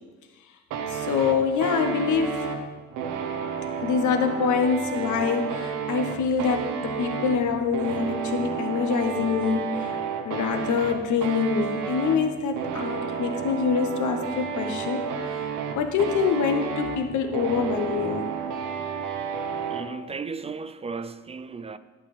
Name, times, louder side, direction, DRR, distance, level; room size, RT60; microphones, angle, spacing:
sound 1, 0.7-19.9, right 6 dB, 85° right, 0.9 m, -31 dB
voice 1, 0.9-2.6 3.8-10.0 10.2-15.5 15.7-18.3, left 6 dB, 75° left, 1.0 m, -25 dB
voice 2, 19.7-21.8, right 5 dB, 20° right, 0.3 m, -35 dB
11.0 x 6.2 x 3.3 m
cardioid pair, 90°, 30 cm